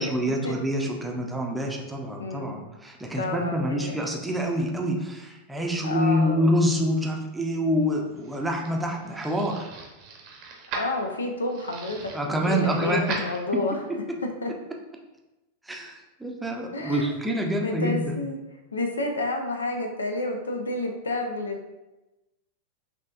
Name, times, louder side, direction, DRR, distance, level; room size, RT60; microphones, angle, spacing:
voice 1, 0.0-9.7 12.1-13.2 15.7-18.2, equal, 5° right, 0 dB, 0.6 m, -26 dB
voice 2, 2.2-2.6 3.2-4.0 5.8-6.5 10.8-13.8 14.4-14.5 16.7-17.1 17.6-18.4 18.7-21.7, left 2 dB, 75° left, 4 dB, 0.5 m, -30 dB
sound 1, 7.9-13.9, right 4 dB, 45° right, 0.8 m, -39 dB
5.6 x 2.7 x 2.4 m, 1.0 s
figure-of-eight pair, 90°, 0 cm